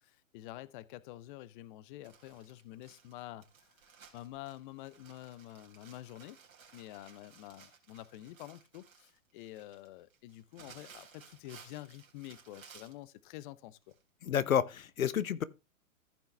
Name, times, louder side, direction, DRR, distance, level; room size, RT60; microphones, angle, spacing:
voice 1, 0.0-3.8 4.1-6.4 6.7-13.9 14.2-14.4, left 15 dB, 40° left, 0.7 m, -48 dB
Crumpling crinkling, 2.0-13.0 13.9-14.0 14.4-14.5, right 6 dB, 80° right, 3.3 m, -58 dB
voice 2, 14.2-15.4, left 9 dB, 80° left, 0.9 m, -30 dB
15.0 x 5.6 x 3.3 m
hypercardioid pair, 120°, 40 cm